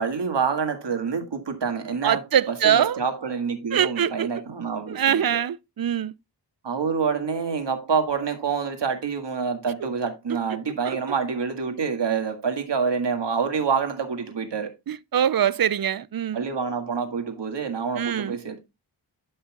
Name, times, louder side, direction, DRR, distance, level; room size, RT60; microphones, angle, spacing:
voice 1, 0.0-5.4 6.6-14.7 16.3-18.6, right 5 dB, 70° right, 1.9 m, -27 dB
voice 2, 2.0-3.0 3.7-4.3 4.9-6.1 10.8-11.0 14.9-16.4 18.0-18.4, right 9 dB, 55° right, 0.5 m, -23 dB
12.5 x 5.6 x 2.3 m
wide cardioid pair, 90°, 44 cm